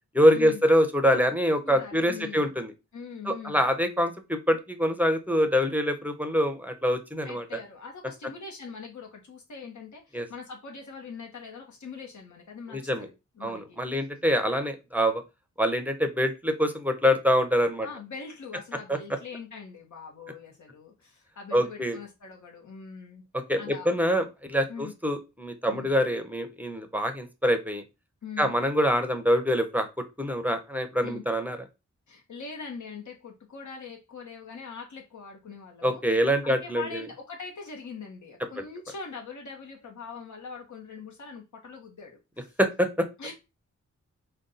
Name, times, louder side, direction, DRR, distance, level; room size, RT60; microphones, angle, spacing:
voice 1, 0.1-2.7 3.3-7.4 10.1-10.3 12.7-13.1 13.4-15.2 15.6-17.9 18.9-19.0 21.5-22.0 23.5-27.8 28.4-29.9 30.2-31.6 35.8-37.0 38.6-38.7 42.6-43.1, equal, 5° right, 0.6 m, -25 dB
voice 2, 1.6-2.5 2.9-3.6 7.2-13.8 17.8-23.2 23.6-23.9 24.7-24.9 25.7-25.9 28.2-28.5 31.0-31.2 32.1-36.0 36.4-42.6 43.2-43.3, left 5 dB, 75° left, 1.0 m, -42 dB
5.2 x 2.2 x 3.8 m
wide cardioid pair, 125°, 30 cm